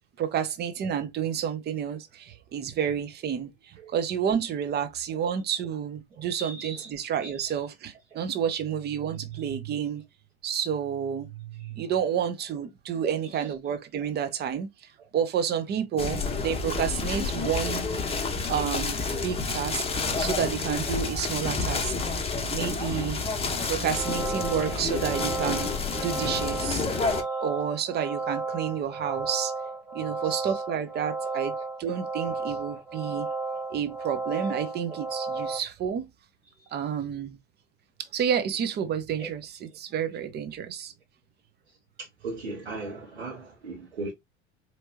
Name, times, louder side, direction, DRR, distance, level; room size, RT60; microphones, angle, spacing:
voice 1, 0.2-10.0 10.4-14.7 15.1-17.9 18.5-19.8 20.2-23.2 23.7-25.7 26.0-26.9 27.4-29.5 29.9-33.3 33.7-36.1 36.7-37.4 38.0-40.9, right 8 dB, 30° right, 0.9 m, -30 dB
voice 2, 6.2-6.9 7.2-7.6 8.1-8.2 11.6-11.7 13.0-13.5 15.0-15.1 24.7-24.8 27.2-27.4 30.0-30.6 31.3-31.4 31.8-31.9 34.9-35.0 35.3-35.4 36.7-36.9 39.2-39.3 42.0-44.1, right 3 dB, 75° right, 1.5 m, -39 dB
sound 1, 16.0-27.2, left 4 dB, 15° left, 0.9 m, -29 dB
sound 2, 23.8-35.6, right 3 dB, 5° right, 0.6 m, -33 dB
4.5 x 3.0 x 2.7 m
figure-of-eight pair, 70°, 33 cm